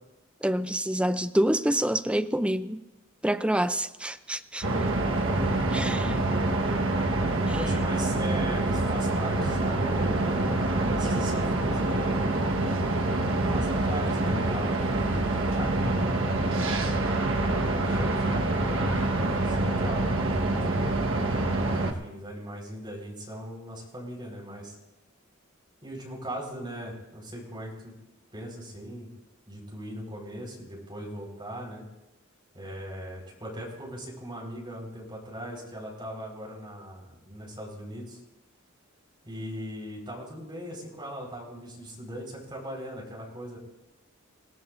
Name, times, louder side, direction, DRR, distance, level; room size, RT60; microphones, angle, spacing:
voice 1, 0.4-2.8 3.2-4.6 5.7-6.2, right 1 dB, 5° right, 9 dB, 0.5 m, -27 dB
sound 1, 4.6-21.9, right 2 dB, 65° right, 1.5 m, -26 dB
voice 2, 4.9-5.7 7.5-10.5 10.9-12.4 13.5-16.5 17.5-21.1 21.7-24.8 25.8-27.9 28.3-29.1 29.5-31.9 32.5-38.2 39.2-43.6, equal, 20° right, -2 dB, 4.9 m, -39 dB
28.5 x 17.0 x 2.7 m, 0.97 s
head